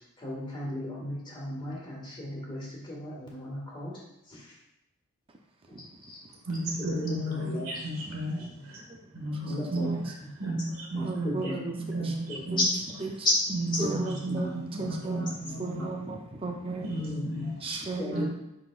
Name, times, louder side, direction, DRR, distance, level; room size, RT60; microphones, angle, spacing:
voice 1, 0.2-4.0 4.3-4.4 5.7-5.8 6.1-6.2 6.9-7.7 9.5-9.9 10.9-11.6 12.0-12.4 13.2-13.3 13.7-14.0 14.3-14.4 15.0-15.1 15.4-15.9 17.0-17.5 18.0-18.3, left 1 dB, 20° left, -4 dB, 1.9 m, -35 dB
voice 2, 6.4-8.8 9.1-12.7 12.9-13.0 13.5-15.9 16.8-17.6 18.1-18.3, right 1 dB, 70° right, -1 dB, 1.8 m, -33 dB
voice 3, 11.0-11.7 12.0-12.1 12.5-12.6 13.0-13.3 13.8-15.2 15.6-16.9 17.6-18.3, right 3 dB, 25° right, 1 dB, 0.5 m, -35 dB
10.0 x 4.1 x 2.4 m, 0.88 s
head